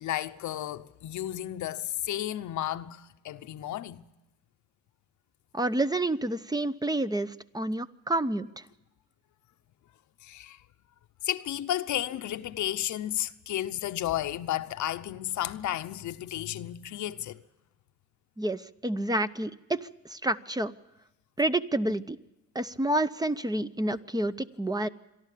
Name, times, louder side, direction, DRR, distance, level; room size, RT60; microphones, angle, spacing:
voice 1, 0.0-4.0 10.2-10.6 11.2-17.4, left 13 dB, 75° left, 0.9 m, -33 dB
voice 2, 5.5-8.6 18.4-20.7 21.4-22.2 22.5-24.9, right 1 dB, 15° right, 0.7 m, -29 dB
27.0 x 11.5 x 8.5 m
cardioid pair, 90°, 30 cm